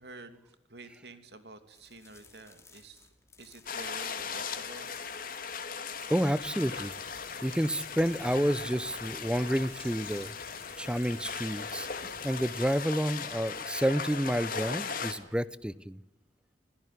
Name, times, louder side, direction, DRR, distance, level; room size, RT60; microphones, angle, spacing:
voice 1, 0.0-3.1 3.4-4.9, right 2 dB, 70° right, 9 dB, 2.8 m, -49 dB
sound 1, 1.7-15.7, left 4 dB, 15° left, 3.1 m, -58 dB
sound 2, 3.7-15.1, left 5 dB, 55° left, 2.5 m, -38 dB
voice 2, 6.1-6.9 7.4-10.3 10.8-11.9 12.2-16.0, equal, 5° right, 17 dB, 0.8 m, -29 dB
sound 3, 6.5-12.7, left 4 dB, 30° left, 5.2 m, -50 dB
25.5 x 16.0 x 9.6 m, 0.93 s
head